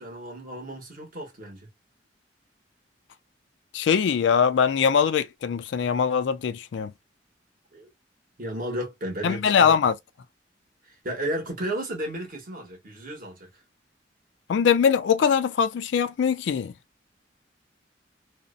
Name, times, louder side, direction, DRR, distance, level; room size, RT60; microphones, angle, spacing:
voice 1, 0.0-1.7 7.7-7.9 8.4-9.7 10.9-13.5, right 1 dB, 50° right, 1.0 m, -33 dB
voice 2, 3.7-6.9 9.2-9.9 14.5-16.7, left 7 dB, 70° left, 0.3 m, -22 dB
2.5 x 2.0 x 2.4 m
head